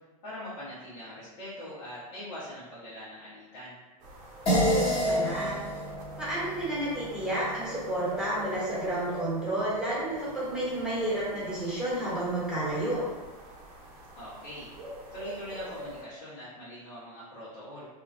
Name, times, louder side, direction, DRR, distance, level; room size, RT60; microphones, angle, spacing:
voice 1, 0.2-3.7 14.1-14.7 15.1-17.9, left 1 dB, 60° left, -12 dB, 1.4 m, -42 dB
sound 1, 4.0-16.0, right 1 dB, 45° right, 0.7 m, -44 dB
sound 2, 4.5-9.2, equal, 30° left, 1.1 m, -30 dB
voice 2, 4.6-5.6 6.2-13.0, right 1 dB, 5° right, -8 dB, 1.2 m, -31 dB
2.8 x 2.3 x 2.7 m, 1.2 s
hypercardioid pair, 115°, 20 cm